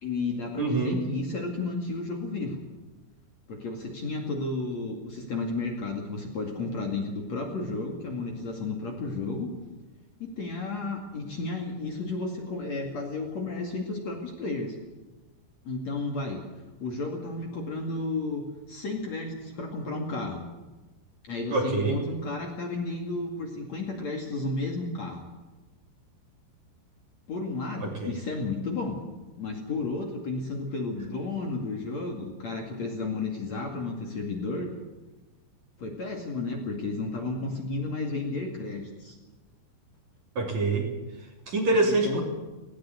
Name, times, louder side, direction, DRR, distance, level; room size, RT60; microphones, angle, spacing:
voice 1, 0.0-2.6 3.5-9.5 10.2-14.8 15.6-16.4 16.8-20.4 21.2-25.3 27.3-29.0 29.3-34.7 35.8-39.2 42.0-42.2, left 3 dB, 45° left, 1 dB, 3.0 m, -32 dB
voice 2, 0.6-1.0 21.5-22.0 27.8-28.1 40.4-40.9 41.5-42.2, right 3 dB, 45° right, 0 dB, 4.1 m, -25 dB
18.5 x 17.5 x 8.3 m, 1.2 s
omnidirectional pair, 5.0 m